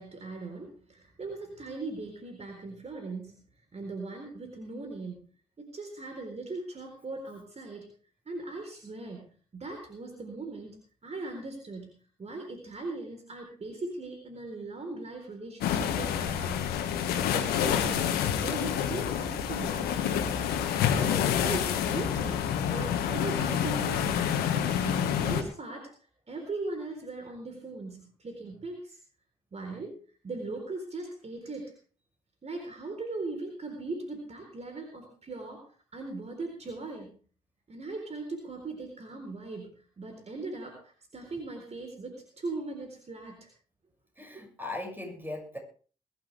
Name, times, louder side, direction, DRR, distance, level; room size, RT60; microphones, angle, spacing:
voice 1, 0.0-3.4 3.7-5.3 5.6-7.9 8.3-11.9 12.2-20.3 20.7-24.3 24.8-25.9 26.3-29.0 29.5-29.9 30.2-31.7 32.4-35.6 35.9-37.1 37.7-43.5 44.3-44.4, right 3 dB, 40° right, 3 dB, 4.0 m, -39 dB
sound 1, 15.6-25.4, left 9 dB, 75° left, 1.6 m, -28 dB
voice 2, 44.2-45.6, left 2 dB, 10° right, 2 dB, 6.4 m, -38 dB
22.0 x 12.0 x 3.4 m, 0.41 s
hypercardioid pair, 40°, 16 cm